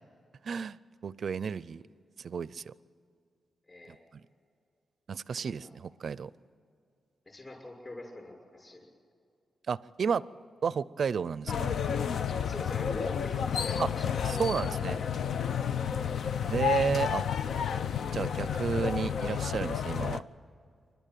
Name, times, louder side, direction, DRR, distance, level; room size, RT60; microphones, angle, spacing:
voice 1, 0.4-1.8 2.2-2.7 4.1-4.2 5.1-6.3 9.7-10.2 10.6-11.7 13.8-13.9 14.2-15.0 16.5-17.3 18.1-20.2, right 6 dB, 55° right, 19 dB, 0.5 m, -32 dB
voice 2, 3.7-4.0 5.3-5.7 7.3-8.8 12.4-15.5 16.0-16.2, left 2 dB, 25° left, 0 dB, 6.1 m, -44 dB
sound 1, 11.5-20.2, left 8 dB, 70° left, 0.6 m, -31 dB
27.5 x 12.5 x 9.1 m, 2.3 s
wide cardioid pair, 130°, 0 cm